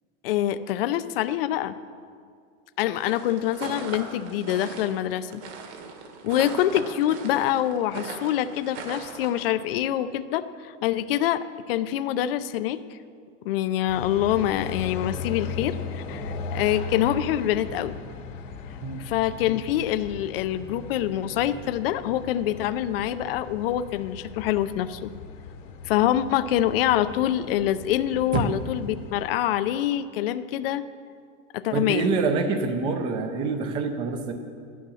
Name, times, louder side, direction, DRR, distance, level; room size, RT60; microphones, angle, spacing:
voice 1, 0.2-1.7 2.8-5.4 6.2-13.0 13.4-17.9 19.0-25.1 25.8-30.8 31.5-32.1, left 12 dB, 50° left, 12 dB, 0.5 m, -25 dB
sound 1, 2.9-9.5, right 5 dB, 60° right, 1.8 m, -39 dB
sound 2, 13.9-29.3, left 4 dB, 90° left, 2.5 m, -38 dB
voice 2, 31.7-34.3, right 4 dB, 15° right, 7 dB, 0.5 m, -26 dB
13.5 x 10.5 x 6.3 m, 2.2 s
supercardioid pair, 180°, 37 cm